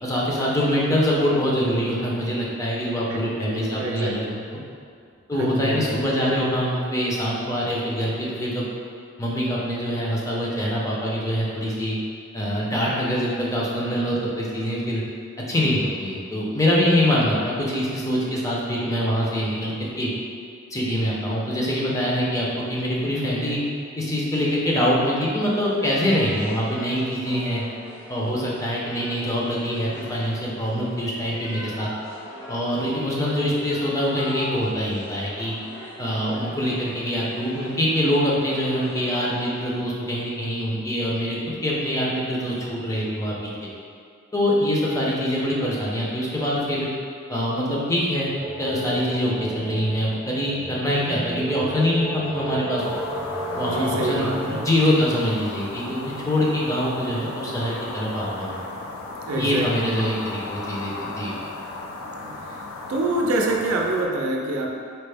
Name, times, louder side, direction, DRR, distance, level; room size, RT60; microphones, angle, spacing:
voice 1, 0.0-4.2 4.5-4.6 5.3-8.7 9.2-12.0 12.3-15.0 15.5-20.1 20.7-23.6 24.0-27.6 28.1-31.9 32.5-35.5 36.0-43.3 44.3-46.9 47.3-48.3 48.6-52.8 53.6-58.6 59.3-61.3, equal, 15° left, -5 dB, 0.5 m, -24 dB
voice 2, 3.1-4.4 5.4-6.0 53.7-54.7 59.2-60.0 62.2-62.6 62.9-64.7, right 1 dB, 85° right, 0 dB, 0.4 m, -26 dB
sound 1, 25.4-39.7, equal, 55° left, 1.0 m, -41 dB
sound 2, 48.4-54.6, right 1 dB, 25° right, 0.6 m, -33 dB
sound 3, 52.8-64.1, left 2 dB, 80° left, 0.4 m, -35 dB
4.2 x 2.0 x 3.3 m, 2.3 s
head